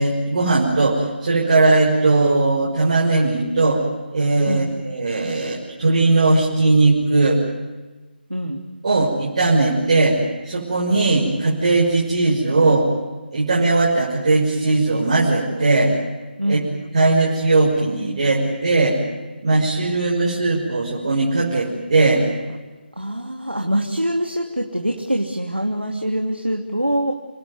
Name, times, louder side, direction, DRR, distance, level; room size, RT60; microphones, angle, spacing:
voice 1, 0.0-3.8 4.1-7.4 8.8-10.2 10.4-12.9 13.3-15.9 16.5-16.6 16.9-19.0 19.4-22.2, right 3 dB, 45° right, -4 dB, 6.4 m, -18 dB
voice 2, 4.4-4.8 8.3-8.6 16.4-16.7 23.0-27.1, equal, 90° right, 2 dB, 3.1 m, -24 dB
29.0 x 19.0 x 9.8 m, 1.2 s
figure-of-eight pair, 155°, 6 cm